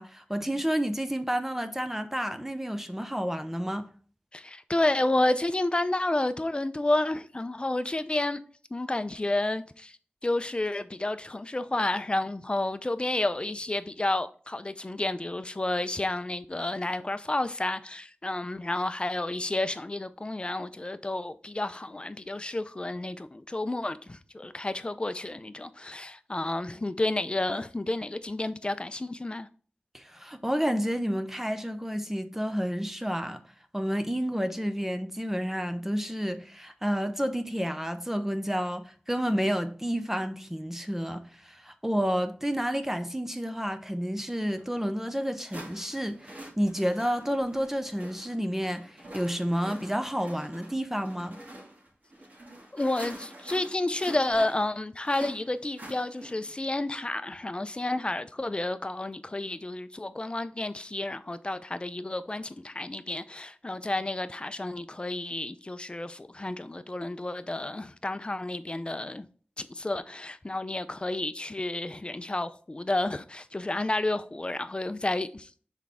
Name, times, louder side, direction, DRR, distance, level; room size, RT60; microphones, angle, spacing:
voice 1, 0.0-3.9 29.9-33.4 33.7-51.4, equal, 10° right, 0.6 m, -30 dB
voice 2, 4.3-8.4 8.7-10.0 10.2-29.5 52.7-69.3 69.6-75.5, left 2 dB, 30° left, 0.5 m, -30 dB
sound 1, 44.6-44.7 45.5-56.6, right 1 dB, 55° right, 2.3 m, -46 dB
6.2 x 4.5 x 3.5 m
wide cardioid pair, 75°, 3 cm